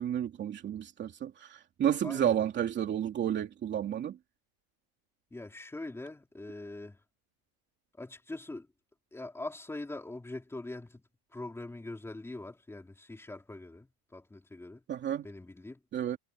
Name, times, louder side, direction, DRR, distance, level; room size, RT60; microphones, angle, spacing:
voice 1, 0.0-4.2 14.9-15.3 15.9-16.2, right 10 dB, 25° right, 2.9 m, -31 dB
voice 2, 2.0-2.4 5.3-7.0 8.0-8.7 9.1-11.0 11.3-14.8 15.2-15.8, left 2 dB, 5° left, 4.8 m, -43 dB
supercardioid pair, 160°, 44 cm